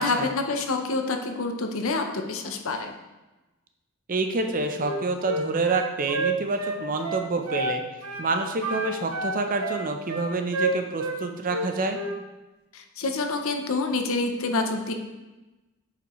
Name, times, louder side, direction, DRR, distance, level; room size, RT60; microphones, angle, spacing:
voice 1, 0.0-2.9 12.7-14.9, left 3 dB, 65° left, 5 dB, 0.8 m, -27 dB
voice 2, 4.1-7.8 8.2-12.0, right 3 dB, 40° right, 5 dB, 0.6 m, -27 dB
Wind instrument woodwind instrument, 4.8-7.8 8.0-8.3 8.6-11.2 11.5-12.2, right 2 dB, 70° right, 0.9 m, -29 dB
8.3 x 5.1 x 3.1 m, 1.1 s
head